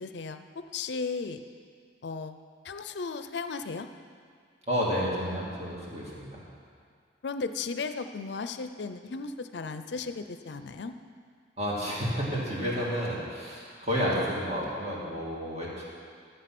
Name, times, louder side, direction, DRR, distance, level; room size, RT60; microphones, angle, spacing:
voice 1, 0.0-1.4 2.0-2.4 2.6-3.9 7.2-10.9, left 4 dB, 70° left, 9 dB, 0.5 m, -35 dB
voice 2, 4.7-6.4 11.6-15.8, equal, 35° right, -5 dB, 2.6 m, -31 dB
12.5 x 8.0 x 6.0 m, 2.1 s
head